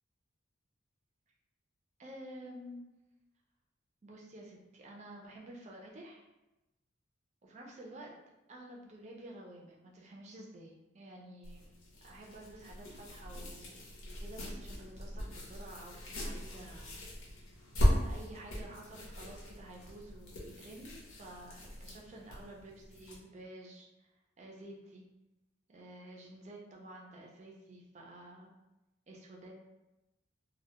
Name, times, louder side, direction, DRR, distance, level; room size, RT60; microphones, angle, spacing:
voice 1, 2.0-2.8 4.0-6.2 7.4-8.1 8.5-11.6 12.0-13.8 14.2-17.4 18.0-25.0 25.7-28.5 29.1-29.6, right 1 dB, 35° right, -1 dB, 0.4 m, -51 dB
sound 1, 11.4-23.2, equal, 85° left, 0.7 m, -38 dB
2.1 x 2.1 x 2.8 m, 1.0 s
head